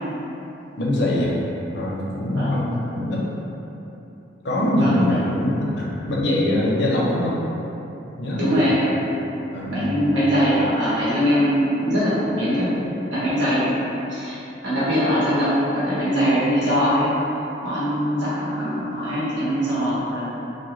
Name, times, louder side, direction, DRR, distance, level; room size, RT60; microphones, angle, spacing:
voice 1, 0.8-1.4 1.7-3.2 4.4-7.4 8.2-8.7 9.5-10.0, left 1 dB, 60° left, -5 dB, 0.5 m, -23 dB
voice 2, 4.6-5.2 8.4-8.9 9.7-13.8 14.1-14.4 14.6-17.1 17.6-20.3, equal, 75° right, -11 dB, 1.1 m, -22 dB
2.5 x 2.2 x 3.0 m, 3.0 s
head